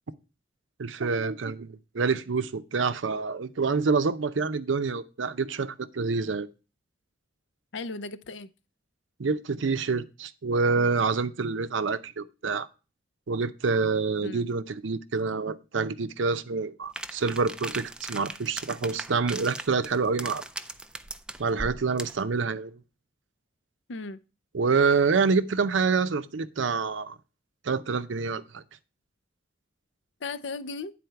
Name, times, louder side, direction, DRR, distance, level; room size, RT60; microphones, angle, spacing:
voice 1, 0.8-6.5 9.2-12.7 13.3-20.4 21.4-22.7 24.5-27.1 27.6-28.6, right 4 dB, 85° right, 0.6 m, -27 dB
voice 2, 7.7-8.5 14.2-14.5 23.9-24.2 30.2-30.9, left 3 dB, 80° left, 0.6 m, -36 dB
sound 1, 17.0-22.2, right 1 dB, 5° right, 0.3 m, -38 dB
9.4 x 4.2 x 5.7 m
head